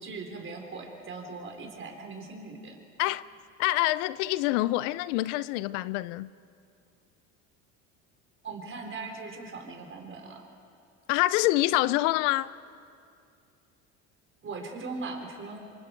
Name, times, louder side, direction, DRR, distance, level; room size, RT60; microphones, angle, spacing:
voice 1, 0.0-2.8 8.4-10.5 14.4-15.6, right 3 dB, 35° right, 4.3 m, -39 dB
voice 2, 3.6-6.3 11.1-12.5, left 18 dB, 75° left, 0.6 m, -26 dB
26.5 x 25.0 x 4.6 m
supercardioid pair, 90°, 36 cm